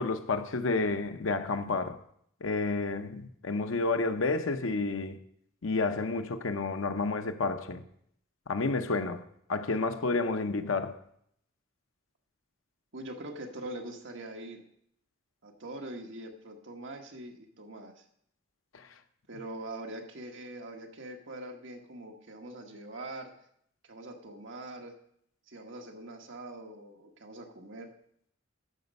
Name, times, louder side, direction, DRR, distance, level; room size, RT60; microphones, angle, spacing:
voice 1, 0.0-2.0 2.4-5.2 5.6-7.8 8.5-9.2 9.5-11.0, left 3 dB, 70° left, 0.7 m, -30 dB
voice 2, 12.9-14.6 15.4-18.0 19.3-23.3 23.9-24.9 25.5-27.9, right 1 dB, 60° right, 1.3 m, -43 dB
13.5 x 5.2 x 5.3 m
head